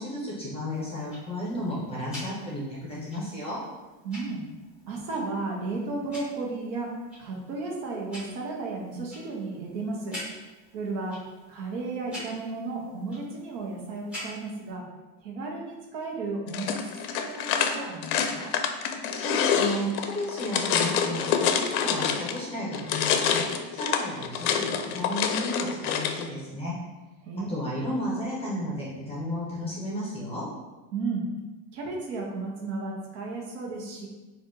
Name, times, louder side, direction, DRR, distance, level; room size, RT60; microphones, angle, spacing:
voice 1, 0.0-3.6 19.1-26.7 27.5-30.5, left 1 dB, 15° left, -5 dB, 0.9 m, -33 dB
Tick-tock, 0.7-14.7, equal, ahead, 1.3 m, -47 dB
voice 2, 4.0-4.4 4.9-6.9 7.2-10.2 10.7-11.2 11.5-14.8 15.2-18.5 27.3-27.6 30.9-31.3 31.7-34.1, right 3 dB, 55° right, -1 dB, 1.0 m, -34 dB
sound 1, 16.5-22.4 22.7-26.2, left 7 dB, 65° left, 0.5 m, -27 dB
3.9 x 2.6 x 3.8 m, 1.2 s
supercardioid pair, 140°, 46 cm